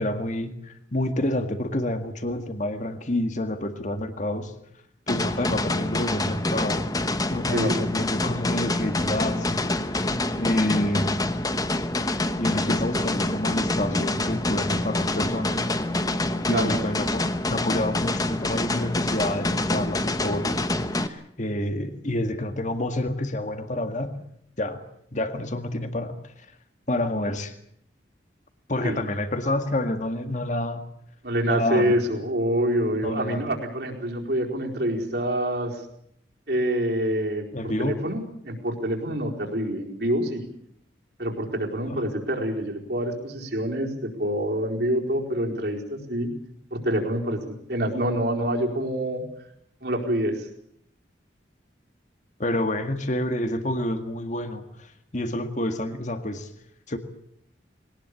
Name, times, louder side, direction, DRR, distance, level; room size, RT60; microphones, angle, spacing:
voice 1, 0.0-4.6 5.1-6.8 7.3-10.1 10.4-11.3 12.4-15.6 16.5-24.2 24.6-24.8 25.1-26.3 26.9-27.5 28.7-30.8 31.4-32.0 33.0-33.4 37.5-38.1 41.9-42.0 52.4-56.5 56.9-57.0, left 1 dB, 40° left, 7 dB, 1.9 m, -28 dB
sound 1, 5.1-21.1, left 2 dB, 20° left, 1.1 m, -26 dB
voice 2, 31.2-35.8 36.5-40.4 41.2-46.3 46.7-49.2 49.8-50.5, right 1 dB, 60° right, 0 dB, 4.6 m, -26 dB
21.5 x 19.0 x 8.5 m, 0.72 s
head